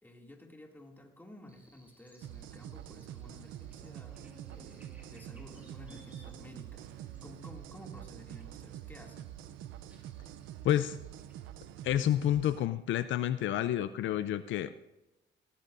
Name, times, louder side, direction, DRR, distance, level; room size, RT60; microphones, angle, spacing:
voice 1, 0.0-9.2, left 1 dB, 10° left, 1 dB, 2.4 m, -53 dB
Buzz, 1.5-11.5, equal, 10° right, 3.2 m, -62 dB
sound 1, 2.2-12.7, right 11 dB, 85° right, 0.6 m, -46 dB
voice 2, 10.6-11.0 11.8-14.7, left 12 dB, 75° left, 12 dB, 0.5 m, -29 dB
18.0 x 13.5 x 2.6 m, 0.97 s
cardioid pair, 90°, 20 cm